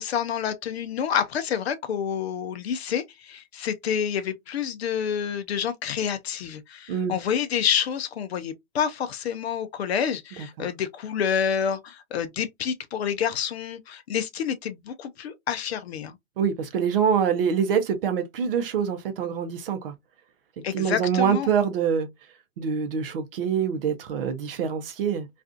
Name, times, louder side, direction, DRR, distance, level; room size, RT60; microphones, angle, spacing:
voice 1, 0.0-16.2 20.6-21.5, left 8 dB, 50° left, 0.5 m, -28 dB
voice 2, 16.4-19.9 20.7-22.1 22.6-25.3, right 7 dB, 45° right, 0.6 m, -25 dB
2.4 x 2.3 x 2.4 m
hypercardioid pair, 130°, 41 cm